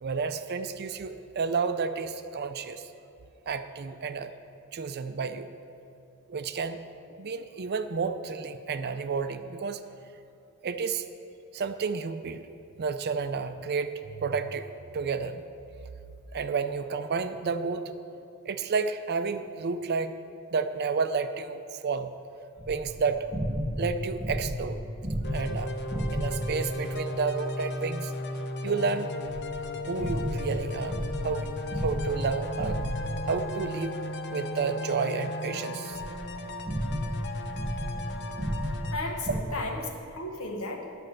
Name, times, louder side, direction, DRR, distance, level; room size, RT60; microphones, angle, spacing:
voice 1, 0.0-2.9 3.5-4.3 4.7-5.5 6.3-6.8 7.2-9.8 10.6-11.1 11.5-12.5 12.8-14.7 14.9-15.4 16.3-18.0 18.4-20.1 20.5-22.1 22.7-23.3 23.8-24.8 25.3-25.8 26.1-28.1 28.6-29.1 29.9-31.0 31.2-32.8 33.3-33.9 34.3-36.0, right 5 dB, 50° right, 10 dB, 0.4 m, -31 dB
sound 1, 22.6-26.7 29.3-33.4 35.9-39.4, equal, 15° right, 0.7 m, -33 dB
sound 2, 25.2-39.0, left 2 dB, 50° left, 0.6 m, -36 dB
voice 2, 38.9-41.1, left 2 dB, 70° left, 2 dB, 1.2 m, -35 dB
10.5 x 5.4 x 7.7 m, 2.6 s
head